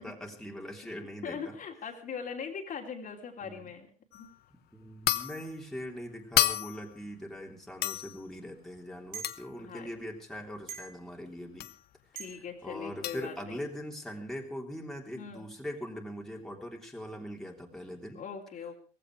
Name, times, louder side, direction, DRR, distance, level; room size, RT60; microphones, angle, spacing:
voice 1, 0.0-1.6 3.4-3.7 4.7-11.7 12.6-18.2, equal, ahead, 0 dB, 3.2 m, -41 dB
voice 2, 1.2-3.9 4.1-4.3 9.6-9.9 12.1-13.6 15.1-15.4 18.1-18.8, left 6 dB, 50° left, 2 dB, 3.1 m, -41 dB
sound 1, 4.1-4.3 5.1-5.5 6.4-7.0 7.8-8.2 9.2-9.5 11.6-11.8 13.0-13.3, left 14 dB, 70° left, 1.0 m, -30 dB
sound 2, 9.1-9.4 10.7-11.0 12.2-12.4, right 6 dB, 65° right, 3.8 m, -42 dB
17.5 x 15.5 x 4.9 m, 0.39 s
cardioid pair, 110°, 17 cm